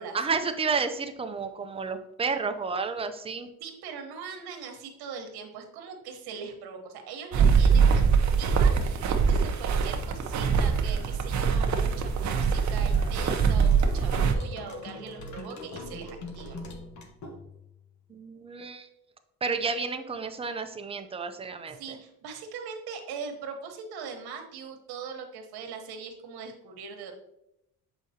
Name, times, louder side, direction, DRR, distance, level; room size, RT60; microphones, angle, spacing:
voice 1, 0.1-3.5 18.1-18.9 19.4-21.8, right 4 dB, 15° right, 7 dB, 0.5 m, -31 dB
voice 2, 3.6-8.0 8.4-16.6 21.7-27.1, right 6 dB, 80° right, 4 dB, 1.2 m, -41 dB
sound 1, 7.3-14.3, right 6 dB, 50° right, 0.7 m, -23 dB
sound 2, 12.9-17.8, left 2 dB, 50° left, 1.1 m, -42 dB
7.0 x 4.8 x 2.8 m, 0.83 s
cardioid pair, 110°, 38 cm